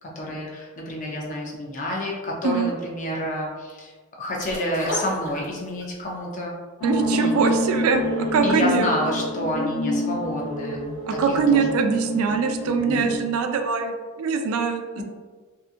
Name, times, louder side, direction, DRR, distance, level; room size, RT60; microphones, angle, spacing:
voice 1, 0.0-6.6 7.1-7.5 8.4-10.8 11.1-11.2 11.5-11.7 15.0-15.1, left 1 dB, 35° left, -2 dB, 0.5 m, -29 dB
sound 1, 4.4-5.9 6.3-6.4, equal, 25° right, 1.1 m, -33 dB
sound 2, 6.8-13.2, equal, 80° left, 0.6 m, -27 dB
voice 2, 6.8-8.9 11.1-15.0, right 5 dB, 70° right, 5 dB, 0.3 m, -23 dB
2.7 x 2.4 x 2.4 m, 1.4 s
head